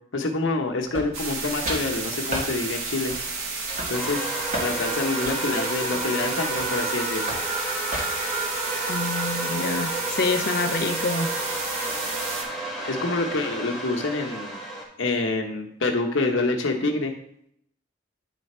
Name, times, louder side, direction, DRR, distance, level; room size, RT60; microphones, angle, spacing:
voice 1, 0.1-3.1 3.9-4.2 4.6-7.3 12.8-14.6 15.0-17.1, left 2 dB, 75° left, 3 dB, 1.0 m, -27 dB
sound 1, 0.9-1.4 1.7-1.9 2.3-2.5 3.1-3.4 3.7-4.7 5.2-6.8 7.3-7.5 7.9-8.3, right 1 dB, 40° right, 1.7 m, -33 dB
sound 2, 1.1-12.4, right 3 dB, 90° right, 1.1 m, -32 dB
sound 3, 3.9-14.9, right 2 dB, ahead, 1.0 m, -31 dB
voice 2, 8.9-11.3, left 3 dB, 55° left, 8 dB, 0.6 m, -27 dB
9.1 x 3.3 x 4.3 m, 0.73 s
head